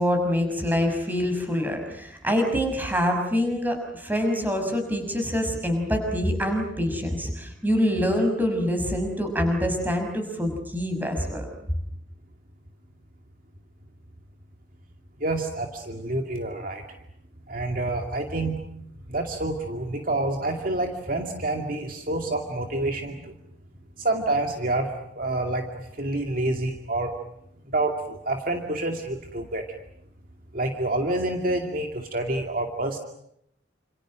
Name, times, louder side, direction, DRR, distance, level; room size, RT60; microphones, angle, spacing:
voice 1, 0.0-11.5, equal, 10° right, 4 dB, 6.2 m, -25 dB
voice 2, 15.2-16.8 17.5-18.6 19.1-23.3 24.0-24.9 25.2-25.7 26.0-27.1 27.7-29.6 30.5-33.0, right 2 dB, 45° right, 4 dB, 2.5 m, -28 dB
29.0 x 28.0 x 6.4 m, 0.73 s
head